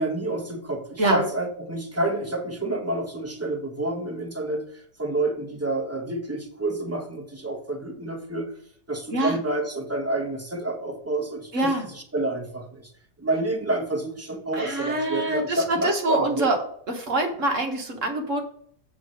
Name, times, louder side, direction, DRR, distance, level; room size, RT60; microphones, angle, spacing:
voice 1, 0.0-4.7 5.0-8.5 8.9-12.9 13.2-16.5, right 2 dB, 10° right, 3 dB, 0.8 m, -29 dB
voice 2, 11.5-11.9 14.5-16.6 16.9-18.4, right 2 dB, 45° right, 3 dB, 1.4 m, -25 dB
7.9 x 3.7 x 6.4 m, 0.65 s
omnidirectional pair, 2.0 m